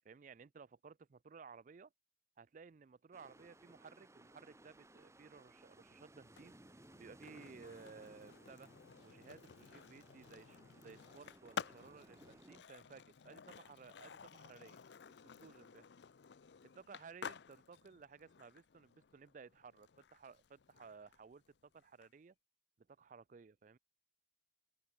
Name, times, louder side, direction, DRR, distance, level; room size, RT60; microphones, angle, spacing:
voice 1, 0.0-1.9 2.4-6.5 7.0-8.7 9.0-14.8 15.2-15.8 16.7-22.3 22.9-23.8, right 5 dB, 45° right, 0.4 m, -57 dB
sound 1, 3.1-12.6, right 1 dB, 15° right, 1.5 m, -62 dB
Skateboard, 6.2-22.1, left 6 dB, 75° left, 0.5 m, -53 dB
open air
head